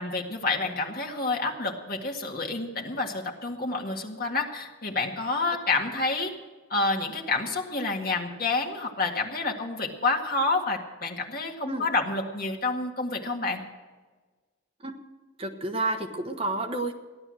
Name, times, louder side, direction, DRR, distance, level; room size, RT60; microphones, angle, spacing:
voice 1, 0.0-6.3 6.7-13.6, left 3 dB, 45° left, 1 dB, 2.0 m, -28 dB
voice 2, 15.4-16.9, right 2 dB, 30° right, 4 dB, 1.1 m, -30 dB
16.0 x 11.5 x 6.4 m, 1.3 s
head